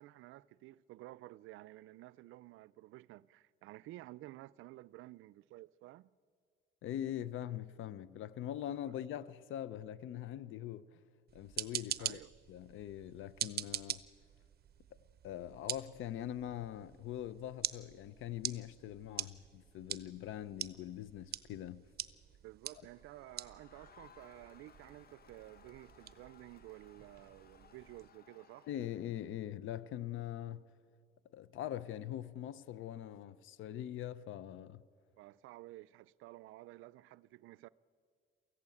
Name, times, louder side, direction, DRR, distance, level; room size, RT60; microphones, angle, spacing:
voice 1, 0.0-6.1 12.0-12.3 22.4-28.7 35.2-37.7, right 17 dB, 90° right, 0.5 m, -53 dB
voice 2, 6.8-11.0 11.3-12.2 12.5-14.0 15.2-21.8 28.7-30.7 31.3-34.8, left 11 dB, 80° left, 0.7 m, -42 dB
sound 1, 11.3-28.1, right 10 dB, 50° right, 0.8 m, -45 dB
Crowd, 22.7-29.5, left 7 dB, 50° left, 1.2 m, -63 dB
23.5 x 15.0 x 8.5 m
cardioid pair, 90°, 20 cm